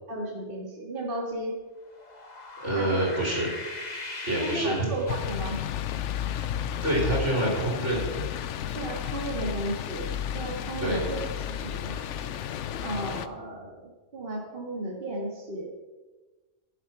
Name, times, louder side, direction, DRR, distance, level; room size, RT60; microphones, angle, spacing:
voice 1, 0.1-1.6 2.8-3.2 4.4-5.6 8.7-10.1 10.3-11.2 11.5-12.0 12.8-15.7, right 2 dB, 50° right, -2 dB, 2.0 m, -34 dB
sound 1, 1.9-5.6, left 2 dB, 35° left, 1.5 m, -40 dB
voice 2, 2.6-3.5 4.2-4.9 6.8-8.1 10.8-11.0, right 1 dB, 85° right, -2 dB, 4.5 m, -26 dB
sound 2, 5.1-13.3, left 9 dB, 85° left, 1.0 m, -32 dB
11.0 x 11.0 x 6.0 m, 1.2 s
omnidirectional pair, 1.2 m